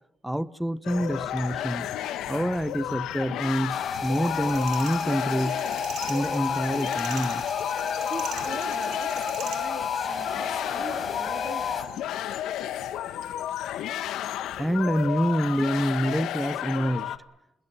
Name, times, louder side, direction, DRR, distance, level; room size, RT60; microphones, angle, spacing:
voice 1, 0.2-1.9 2.3-5.6 6.1-7.4 14.6-17.2, equal, 5° right, 15 dB, 1.2 m, -27 dB
sound 1, 0.8-17.2, left 11 dB, 85° left, 1.5 m, -32 dB
sound 2, 3.7-11.8, left 5 dB, 45° left, 5.0 m, -32 dB
sound 3, 3.9-9.6, right 10 dB, 85° right, 5.0 m, -42 dB
voice 2, 8.0-12.0, right 5 dB, 45° right, 6 dB, 3.5 m, -42 dB
27.0 x 21.0 x 7.5 m, 0.86 s
cardioid pair, 90°, 0 cm